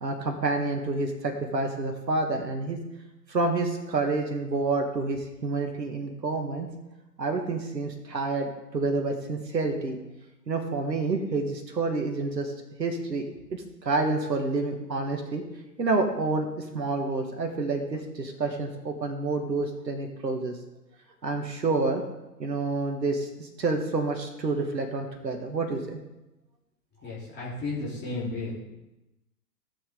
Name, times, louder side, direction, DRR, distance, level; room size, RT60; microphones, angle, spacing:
voice 1, 0.0-2.8 3.3-6.7 7.2-10.0 10.5-12.5 12.8-15.4 15.8-16.5 16.7-20.6 21.2-22.0 22.4-26.0, right 3 dB, 80° right, 3 dB, 1.7 m, -28 dB
voice 2, 27.0-28.5, left 3 dB, 20° left, -7 dB, 3.4 m, -33 dB
15.5 x 7.4 x 3.8 m, 0.97 s
figure-of-eight pair, 120°, 49 cm